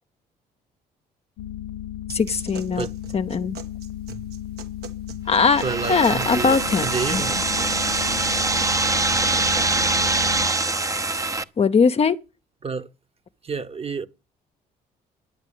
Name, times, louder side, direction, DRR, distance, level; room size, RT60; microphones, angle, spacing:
sound 1, 1.4-10.5, left 12 dB, 85° left, 0.6 m, -34 dB
voice 1, 2.1-2.9 3.1-3.6 5.3-5.6 5.9-7.2 11.6-12.2, left 5 dB, 35° left, 0.7 m, -20 dB
sound 2, 2.1-10.1, right 7 dB, 75° right, 1.5 m, -43 dB
sound 3, 5.3-11.4, right 3 dB, 20° right, 0.8 m, -23 dB
voice 2, 5.6-6.6 6.8-7.4 12.6-12.9 13.4-14.1, right 5 dB, 35° right, 1.2 m, -29 dB
10.5 x 8.1 x 8.4 m
supercardioid pair, 70°, 17 cm